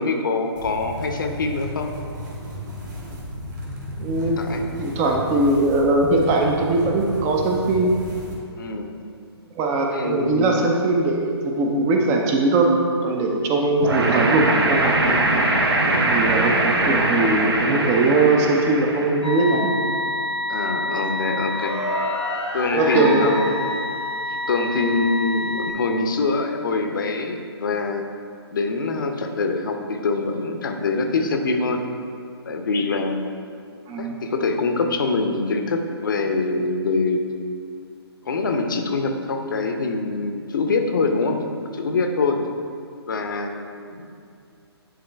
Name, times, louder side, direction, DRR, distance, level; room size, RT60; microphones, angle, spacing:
voice 1, 0.0-1.9 4.2-4.6 8.6-8.9 9.9-10.5 20.5-21.7 22.5-23.4 24.3-28.1 28.5-31.8 32.4-33.2 34.0-37.3 38.2-42.4 43.1-44.0, left 3 dB, 50° left, 5 dB, 0.7 m, -24 dB
sound 1, 0.5-8.3, equal, 45° right, 1.6 m, -34 dB
voice 2, 4.0-4.4 4.8-7.9 9.6-12.7 13.0-15.2 16.0-19.7 22.7-23.3 33.9-34.2, right 2 dB, 15° right, 1 dB, 0.5 m, -20 dB
sound 2, 13.8-19.2, right 2 dB, 65° right, 1.0 m, -21 dB
sound 3, 19.2-25.7, left 1 dB, 85° left, 1.2 m, -27 dB
10.0 x 3.7 x 3.4 m, 2.3 s
figure-of-eight pair, 135°, 14 cm